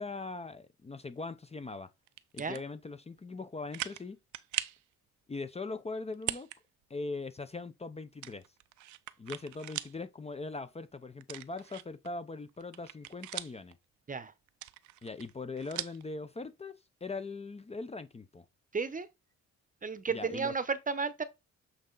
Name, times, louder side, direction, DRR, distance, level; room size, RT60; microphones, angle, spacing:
voice 1, 0.0-1.9 2.3-4.2 5.3-6.5 6.9-8.4 9.2-13.8 15.0-16.7 17.0-18.4 20.1-20.5, left 3 dB, 20° left, 0.7 m, -40 dB
sound 1, 2.1-2.6 3.2-3.3 3.7-4.0 4.3-4.8 6.1-6.6 6.9-7.0 8.2-10.0 10.3-10.4 11.2-12.1 12.5-13.7 14.5-16.0, right 14 dB, 75° right, 0.6 m, -40 dB
voice 2, 18.7-19.1 19.8-21.2, right 5 dB, 25° right, 0.8 m, -33 dB
7.9 x 3.8 x 3.9 m
cardioid pair, 90°, 30 cm